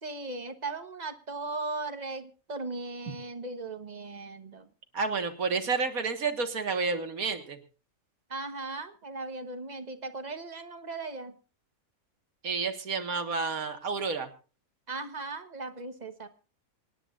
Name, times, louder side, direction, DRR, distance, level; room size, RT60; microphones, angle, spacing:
voice 1, 0.0-4.7 8.3-11.3 14.9-16.3, right 3 dB, 30° right, 9 dB, 1.3 m, -38 dB
voice 2, 4.9-7.6 12.4-14.3, right 4 dB, 80° right, 7 dB, 2.1 m, -30 dB
26.5 x 10.0 x 2.5 m, 0.36 s
omnidirectional pair, 1.5 m